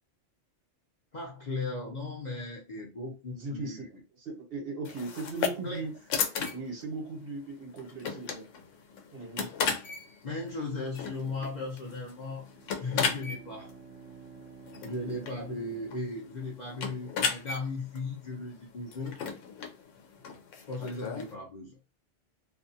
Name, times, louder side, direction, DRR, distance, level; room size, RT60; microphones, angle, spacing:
voice 1, 1.1-3.9 5.6-5.8 10.2-12.5 12.8-13.7 14.8-19.2 20.7-21.8, left 3 dB, 45° left, -3 dB, 0.7 m, -37 dB
voice 2, 3.3-3.8 4.2-5.9 6.5-8.4 9.1-9.5, right 3 dB, 55° right, 2 dB, 1.1 m, -38 dB
sound 1, 4.8-21.3, left 6 dB, 85° left, 1.0 m, -36 dB
Bowed string instrument, 12.4-17.0, right 5 dB, 80° right, 0.9 m, -51 dB
2.5 x 2.3 x 2.7 m, 0.30 s
omnidirectional pair, 1.3 m